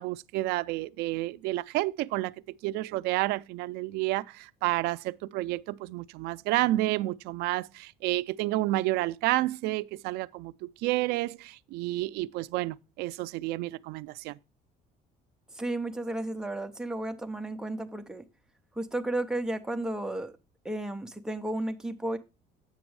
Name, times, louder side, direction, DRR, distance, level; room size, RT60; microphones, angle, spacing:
voice 1, 0.0-2.3 2.6-14.4, right 18 dB, 70° right, 0.4 m, -30 dB
voice 2, 15.5-18.2 18.8-20.3 20.6-22.2, right 1 dB, 5° right, 0.6 m, -33 dB
8.0 x 6.1 x 4.6 m
cardioid pair, 180°, 17 cm